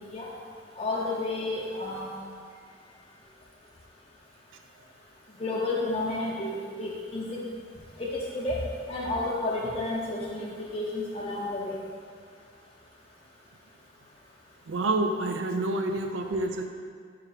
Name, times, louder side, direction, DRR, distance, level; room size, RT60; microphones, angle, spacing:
voice 1, 0.8-2.1 5.4-7.4 8.0-8.6 8.9-11.8, left 2 dB, 35° left, -5 dB, 0.6 m, -31 dB
voice 2, 14.7-16.6, right 2 dB, 85° right, 5 dB, 0.4 m, -28 dB
4.9 x 4.7 x 4.9 m, 2.1 s
head